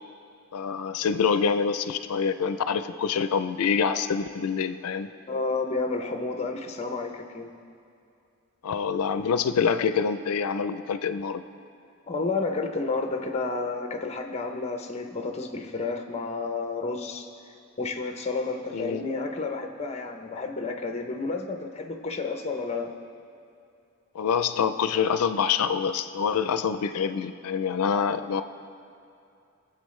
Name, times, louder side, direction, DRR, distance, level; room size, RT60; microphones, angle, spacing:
voice 1, 0.5-5.1 8.6-11.4 18.7-19.0 24.1-28.4, left 6 dB, 90° left, 11 dB, 0.4 m, -26 dB
voice 2, 5.3-7.5 12.1-17.3 17.8-22.9, left 3 dB, 30° left, 5 dB, 0.6 m, -31 dB
21.5 x 7.7 x 3.2 m, 2.6 s
head